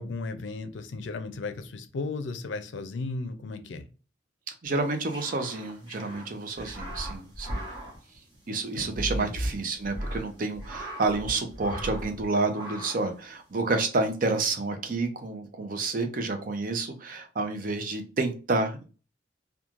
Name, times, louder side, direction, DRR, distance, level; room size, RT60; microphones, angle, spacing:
voice 1, 0.0-3.8 8.7-9.3, left 3 dB, 80° left, 9 dB, 0.4 m, -35 dB
voice 2, 4.6-7.7 8.5-18.8, right 3 dB, 45° right, 6 dB, 0.5 m, -29 dB
sound 1, 4.7-8.8 9.1-9.2 9.7-11.3 11.6-12.2 12.5-13.2, right 2 dB, 25° right, 1.1 m, -43 dB
sound 2, 6.5-12.6, equal, 75° right, 1.0 m, -35 dB
3.0 x 2.3 x 2.4 m, 0.35 s
head